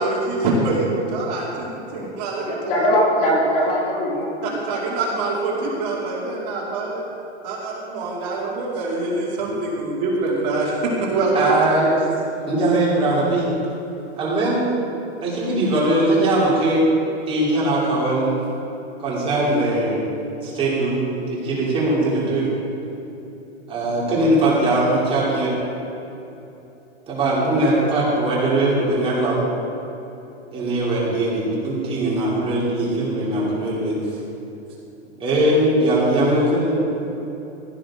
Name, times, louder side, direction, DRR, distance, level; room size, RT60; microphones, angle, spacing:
voice 1, 0.0-2.7 4.4-7.0 7.4-11.5, right 2 dB, 35° right, -4 dB, 2.4 m, -24 dB
voice 2, 2.5-4.6, equal, 30° left, -3 dB, 2.3 m, -20 dB
voice 3, 11.3-12.0 12.5-13.5 14.2-14.7 15.2-16.8 17.3-18.4 19.0-20.0 20.4-21.0 21.3-22.4 23.7-25.5 27.1-29.4 30.5-33.9 35.2-36.8, right 1 dB, 15° right, -7 dB, 3.1 m, -20 dB
16.0 x 11.5 x 3.8 m, 3.0 s
hypercardioid pair, 160°, 34 cm